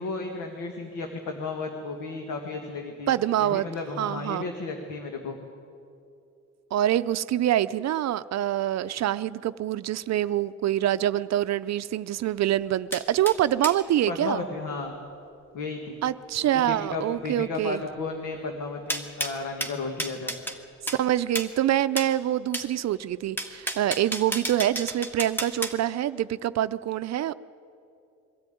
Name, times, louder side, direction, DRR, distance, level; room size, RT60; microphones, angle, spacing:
voice 1, 0.0-5.4 14.1-15.0 15.5-16.0 16.4-20.3, left 3 dB, 80° left, 4 dB, 1.8 m, -34 dB
voice 2, 3.1-3.7 4.0-4.5 6.7-14.4 16.0-17.8 20.9-27.3, right 12 dB, 60° right, 13 dB, 0.6 m, -25 dB
sound 1, 12.9-13.8 18.9-20.6 20.9-21.0 21.3-21.5 22.0-22.1 22.5-22.7 23.4-25.8, right 1 dB, 5° left, 1.7 m, -32 dB
22.5 x 13.5 x 9.3 m, 2.6 s
cardioid pair, 90°, 30 cm